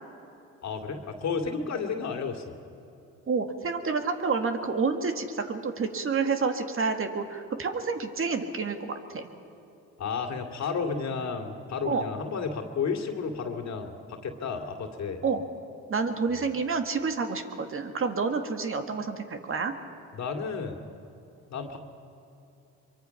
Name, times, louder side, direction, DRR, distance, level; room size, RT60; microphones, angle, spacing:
voice 1, 0.6-2.5 10.0-15.2 16.3-16.5 20.1-20.8 21.5-21.8, left 5 dB, 60° left, 4 dB, 2.4 m, -32 dB
voice 2, 3.3-9.3 11.9-12.0 15.2-15.4 15.9-19.7, right 4 dB, 45° right, 6 dB, 1.9 m, -29 dB
24.0 x 24.0 x 5.8 m, 2.9 s
cardioid pair, 90°, 30 cm